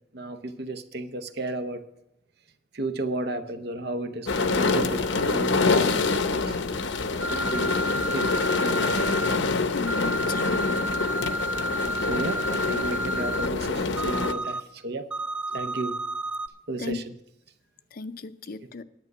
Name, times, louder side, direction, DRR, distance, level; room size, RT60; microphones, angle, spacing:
voice 1, 0.1-1.9 2.7-5.0 5.3-6.5 7.3-7.8 8.1-8.3 8.6-9.0 12.0-15.1 15.5-16.0 16.7-17.1 18.6-18.7, right 2 dB, 60° right, 9 dB, 0.8 m, -33 dB
sound 1, 4.3-14.3, left 3 dB, 75° left, 0.9 m, -26 dB
sound 2, 7.2-9.4 9.9-13.5 14.0-14.6 15.1-16.5, right 1 dB, 5° right, 0.4 m, -31 dB
voice 2, 9.7-10.8 16.8-17.0 17.9-18.8, left 4 dB, 50° left, 12 dB, 0.5 m, -35 dB
10.5 x 9.3 x 6.0 m, 0.89 s
head